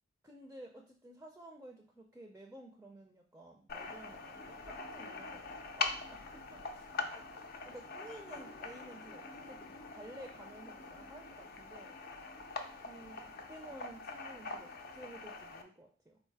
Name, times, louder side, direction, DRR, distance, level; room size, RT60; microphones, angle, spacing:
voice 1, 0.2-6.8 7.1-12.0 12.8-16.2, right 1 dB, 10° right, 2 dB, 0.5 m, -53 dB
sound 1, 3.7-15.6, left 4 dB, 50° left, 0.5 m, -43 dB
4.3 x 2.6 x 4.7 m, 0.42 s
head